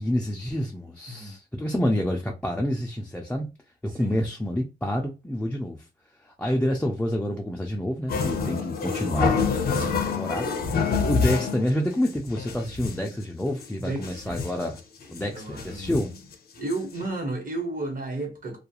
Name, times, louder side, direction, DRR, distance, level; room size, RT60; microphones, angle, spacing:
voice 1, 0.0-3.5 3.8-5.8 6.4-9.4 9.7-10.5 11.1-14.8 15.1-16.1, equal, 5° left, 0.3 m, -28 dB
voice 2, 3.9-4.2 10.9-11.1 13.8-14.4 15.2-15.9 16.6-18.6, right 2 dB, 50° right, 1.1 m, -33 dB
sound 1, 8.1-11.7 12.1-12.2 12.4-13.1 13.6-13.7 13.9-14.7 15.2-15.3 15.6-16.2 16.7-16.8 17.0-17.1, left 5 dB, 60° left, 0.6 m, -26 dB
2.3 x 2.3 x 2.8 m
wide cardioid pair, 110°, 18 cm